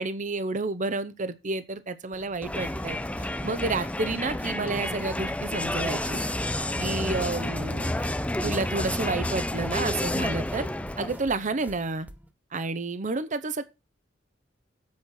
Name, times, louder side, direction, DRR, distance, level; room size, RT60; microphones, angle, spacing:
voice 1, 0.0-3.0 3.4-6.2 6.8-7.9 8.4-10.7 11.0-12.1 12.5-13.6, right 3 dB, 40° right, 0.8 m, -30 dB
sound 1, 2.1-12.3, right 1 dB, 10° right, 1.0 m, -48 dB
Crowd, 2.4-11.3, left 1 dB, 5° left, 0.5 m, -30 dB
8.5 x 6.4 x 6.3 m
head